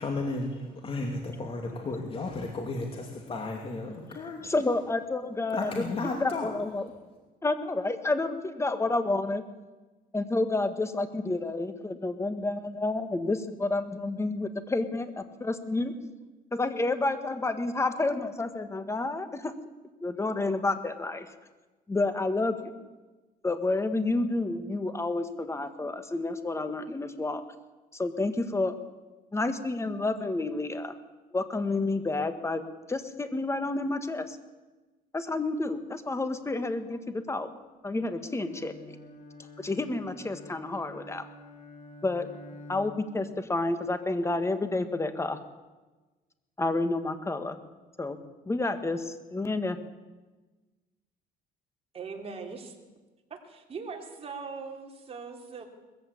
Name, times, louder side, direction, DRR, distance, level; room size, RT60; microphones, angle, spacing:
voice 1, 0.0-4.7 5.5-6.5, left 3 dB, 35° left, 2 dB, 2.7 m, -34 dB
voice 2, 4.4-5.8 6.2-6.8 7.4-9.4 10.1-16.0 16.5-19.5 20.0-21.3 21.9-22.7 23.4-27.4 27.9-28.7 29.3-30.9 31.3-32.6 32.9-34.4 35.1-37.5 37.8-39.0 39.6-41.2 42.0-42.3 42.7-45.4 46.6-47.6 48.0-48.2 48.5-49.8, left 2 dB, 15° left, 9 dB, 1.8 m, -30 dB
Bowed string instrument, 37.9-43.2, left 1 dB, 50° left, 4.8 m, -48 dB
voice 3, 51.9-52.8 53.4-55.6, right 5 dB, 35° right, 2 dB, 3.5 m, -40 dB
20.5 x 15.0 x 8.6 m, 1.2 s
cardioid pair, 110°, 17 cm